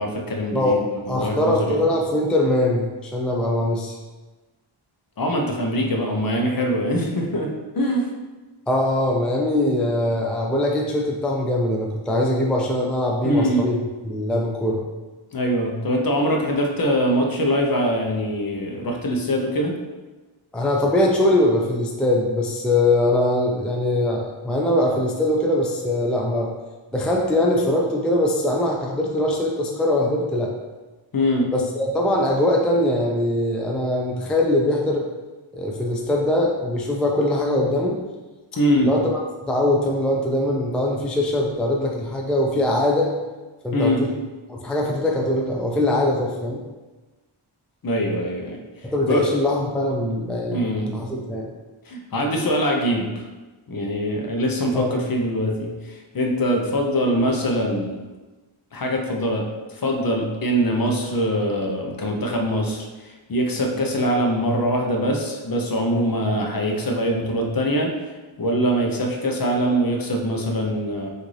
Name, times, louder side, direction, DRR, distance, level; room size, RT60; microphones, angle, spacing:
voice 1, 0.0-1.8 5.2-8.1 13.2-13.7 15.3-19.8 31.1-31.5 38.6-38.9 43.7-44.0 47.8-48.6 49.1-49.3 50.5-50.9 51.9-53.2 53.7-58.0 58.7-67.9 68.4-71.1, equal, 45° left, 1 dB, 0.7 m, -23 dB
voice 2, 0.5-4.0 8.7-13.8 14.0-14.8 20.5-26.5 26.9-30.5 31.5-35.1 35.5-38.0 38.8-39.2 39.5-43.1 43.6-44.2 44.5-46.6 48.8-51.5 54.7-55.0, left 1 dB, ahead, -1 dB, 0.3 m, -22 dB
6.0 x 2.6 x 3.2 m, 1.2 s
wide cardioid pair, 150°, 50 cm